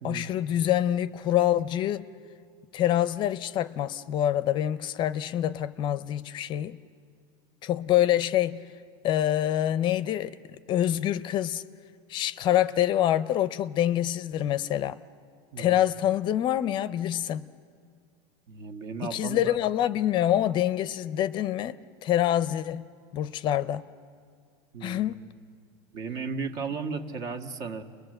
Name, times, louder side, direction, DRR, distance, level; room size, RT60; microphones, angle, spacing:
voice 1, 0.0-2.1 2.7-6.8 7.6-8.6 9.0-10.3 10.7-11.6 12.1-15.0 15.6-17.5 19.0-22.8 23.1-23.9 24.8-25.2, left 12 dB, 35° left, 0.6 m, -26 dB
voice 2, 18.5-19.6 24.7-25.0 25.9-27.8, right 5 dB, 55° right, 1.7 m, -35 dB
30.0 x 21.0 x 7.8 m
supercardioid pair, 145°, 14 cm